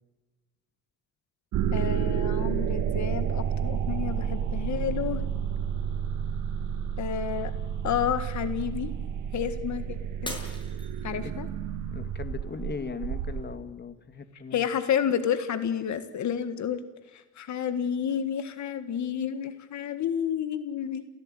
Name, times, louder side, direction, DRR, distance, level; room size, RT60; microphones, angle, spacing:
sound 1, 1.5-13.4, right 8 dB, 85° right, 1.7 m, -30 dB
voice 1, 1.7-5.2 7.0-7.5 7.8-8.9 9.3-10.0 10.2-10.4 11.0-11.5 14.5-16.8 17.1-21.0, left 8 dB, 70° left, 11 dB, 1.7 m, -30 dB
Shatter, 10.2-11.5 12.1-12.5 13.1-13.2, left 1 dB, 15° left, 7.5 m, -40 dB
voice 2, 11.9-14.7, left 5 dB, 35° left, 11 dB, 2.2 m, -38 dB
30.0 x 16.5 x 9.0 m, 1.3 s
cardioid pair, 90°, 30 cm